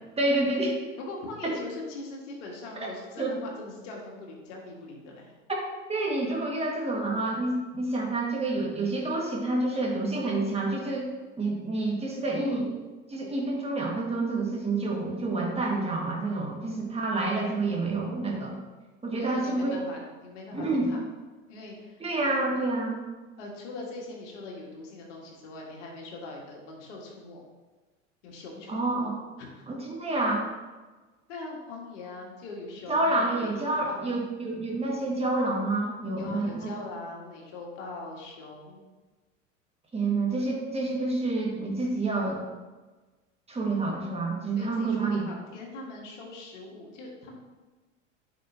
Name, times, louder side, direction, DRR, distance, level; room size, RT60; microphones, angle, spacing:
voice 1, 0.2-0.8 1.4-1.5 2.8-2.9 3.2-3.4 5.9-11.1 11.4-12.7 13.1-18.6 19.0-19.8 20.5-20.9 22.0-23.0 28.7-29.1 29.7-30.5 32.9-36.7 39.9-42.4 43.5-45.3, right 2 dB, 15° right, -2 dB, 1.8 m, -28 dB
voice 2, 1.0-5.3 19.1-21.0 21.5-22.0 22.3-22.6 23.4-27.4 28.2-29.1 29.4-29.7 31.3-34.2 36.2-38.8 44.6-47.4, left 2 dB, 70° left, 0 dB, 1.9 m, -42 dB
9.8 x 5.2 x 2.9 m, 1.2 s
hypercardioid pair, 80°, 38 cm